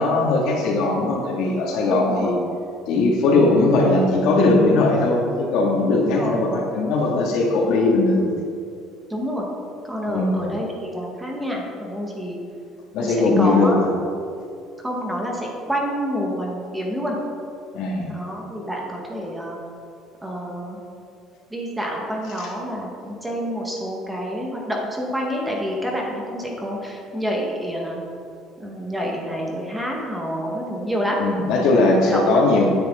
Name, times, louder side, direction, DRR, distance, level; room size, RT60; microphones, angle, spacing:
voice 1, 0.0-2.3 2.9-8.3 10.1-10.5 12.9-13.9 17.7-18.1 22.4-22.5 31.2-32.7, left 2 dB, 70° left, -2 dB, 2.7 m, -19 dB
voice 2, 1.9-2.3 5.9-6.4 9.1-9.5 9.8-12.4 13.0-13.8 14.8-17.2 18.1-19.6 20.2-20.8 21.5-28.0 28.6-31.2 31.7-32.7, equal, 5° right, -2 dB, 1.9 m, -28 dB
16.0 x 10.0 x 4.0 m, 2.5 s
cardioid pair, 150°, 0 cm